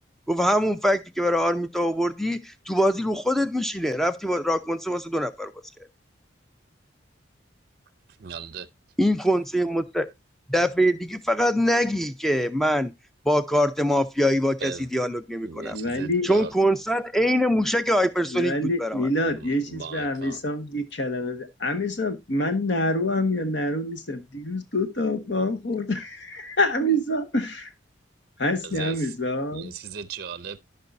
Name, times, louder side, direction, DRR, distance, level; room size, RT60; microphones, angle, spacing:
voice 1, 0.3-5.5 9.0-10.1 10.5-12.9 13.3-15.8 16.2-19.0, equal, ahead, 0.5 m, -23 dB
voice 2, 8.2-8.7 14.6-14.9 15.4-16.5 19.3-20.4 28.6-29.2 29.5-30.6, right 6 dB, 50° right, 0.5 m, -37 dB
voice 3, 15.7-16.3 18.2-27.7 28.4-29.7, left 1 dB, 65° left, 1.2 m, -26 dB
14.5 x 5.4 x 2.6 m
head